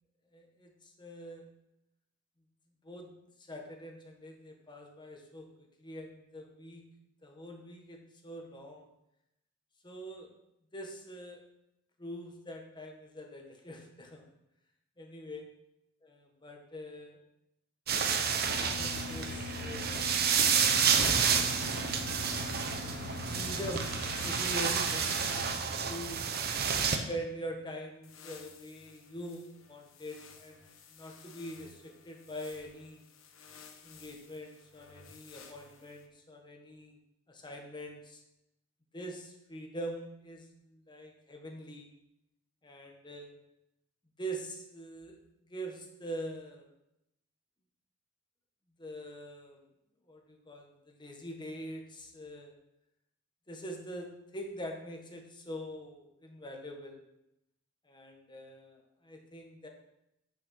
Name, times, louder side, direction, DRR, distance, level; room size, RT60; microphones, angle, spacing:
voice 1, 0.3-1.4 2.8-3.1 3.4-6.8 7.2-8.9 9.8-10.3 10.7-11.4 12.0-14.3 15.0-15.5 16.0-17.2 18.1-20.6 23.3-26.3 27.1-30.7 30.9-33.0 33.8-37.0 37.3-38.2 38.9-41.9 42.6-43.4 44.2-45.2 45.4-46.7 48.8-49.6 50.1-52.5 53.5-57.0 57.9-59.7, equal, 25° left, 2 dB, 1.5 m, -44 dB
sound 1, 17.9-27.0, right 6 dB, 50° right, 0.9 m, -30 dB
sound 2, 18.4-25.6 28.1-29.4 30.0-31.9 32.3-32.7 33.2-34.4 34.8-35.8, left 4 dB, 80° left, 1.2 m, -45 dB
9.3 x 6.5 x 5.6 m, 0.84 s
head